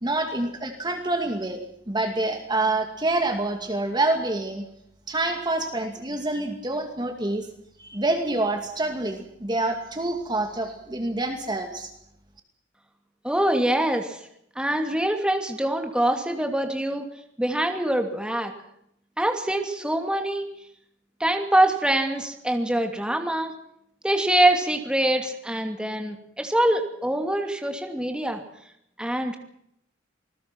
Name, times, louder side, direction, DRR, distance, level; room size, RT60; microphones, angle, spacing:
voice 1, 0.0-1.6 1.9-4.6 5.1-7.5 7.8-11.9, right 2 dB, 25° right, 5 dB, 2.4 m, -27 dB
voice 2, 13.2-14.2 14.6-17.1 17.4-18.5 19.2-20.5 21.2-23.5 24.0-28.4 29.0-29.4, right 1 dB, 5° right, 4 dB, 2.7 m, -24 dB
27.0 x 20.5 x 6.1 m, 0.74 s
head